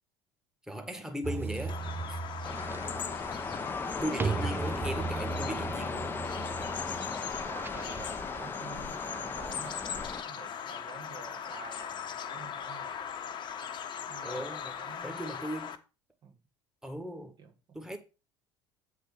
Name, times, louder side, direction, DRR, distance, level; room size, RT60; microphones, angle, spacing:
voice 1, 0.7-1.8 2.1-2.2 4.0-6.2 14.2-14.7 15.0-15.8 16.8-17.3 17.7-18.0, equal, 5° right, 1.7 m, -37 dB
sound 1, 1.2-8.2, right 4 dB, 20° right, 0.4 m, -37 dB
Bird vocalization bird call bird song, 1.7-15.8, left 8 dB, 45° left, 1.1 m, -40 dB
sound 2, 2.4-10.2, left 4 dB, 20° left, 0.8 m, -37 dB
voice 2, 6.6-7.0 7.5-9.8 10.2-13.0 14.1-14.5 14.8-15.3 16.2-16.4 17.4-18.0, right 5 dB, 45° right, 1.7 m, -49 dB
8.0 x 4.3 x 5.5 m
hypercardioid pair, 70°, 11 cm